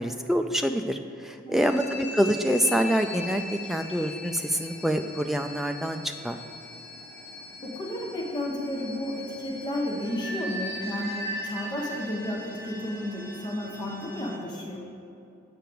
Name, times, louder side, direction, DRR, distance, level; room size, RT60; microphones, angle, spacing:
voice 1, 0.0-6.4, equal, ahead, 5 dB, 0.3 m, -26 dB
sound 1, 1.5-14.4, left 1 dB, 50° left, 1.6 m, -39 dB
voice 2, 7.6-14.8, left 1 dB, 20° left, -2 dB, 1.0 m, -32 dB
7.7 x 5.6 x 6.9 m, 2.6 s
head